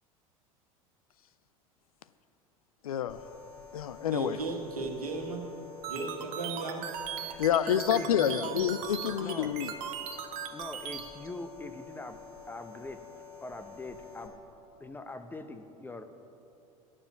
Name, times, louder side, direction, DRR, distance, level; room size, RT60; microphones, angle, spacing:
voice 1, 2.8-3.4 3.7-4.4 7.4-9.7, left 9 dB, 75° left, 15 dB, 0.4 m, -28 dB
sound 1, 3.1-14.3, left 5 dB, 55° left, 2.9 m, -49 dB
voice 2, 4.1-5.5 5.9-6.8 7.9-8.6, right 3 dB, 85° right, 1 dB, 1.4 m, -36 dB
sound 2, 5.8-11.0, right 9 dB, 55° right, 1.0 m, -38 dB
voice 3, 7.2-8.1 9.2-9.5 10.5-12.2 12.5-13.0 13.4-14.4 14.8-16.0, left 2 dB, 10° left, 8 dB, 0.7 m, -43 dB
9.7 x 7.1 x 7.2 m, 2.7 s
figure-of-eight pair, 75°, 19 cm